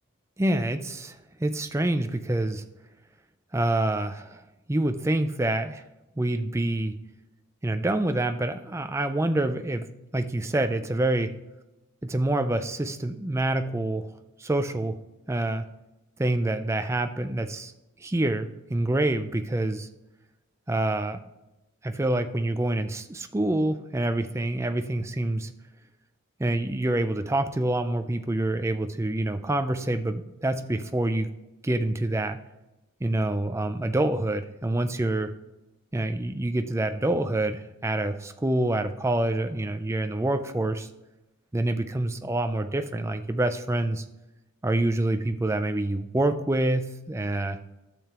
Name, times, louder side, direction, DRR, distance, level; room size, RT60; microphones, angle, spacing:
voice 1, 0.4-2.6 3.5-4.4 4.7-5.8 6.2-6.9 7.6-9.9 10.1-11.3 12.0-14.1 14.4-15.0 15.3-15.7 16.2-17.7 18.0-19.9 20.7-21.2 21.8-25.5 26.4-31.3 31.6-32.4 33.0-35.3 35.9-40.9 41.5-44.0 44.6-47.6, right 1 dB, 15° right, 8 dB, 0.4 m, -26 dB
12.0 x 6.7 x 3.0 m, 0.99 s
head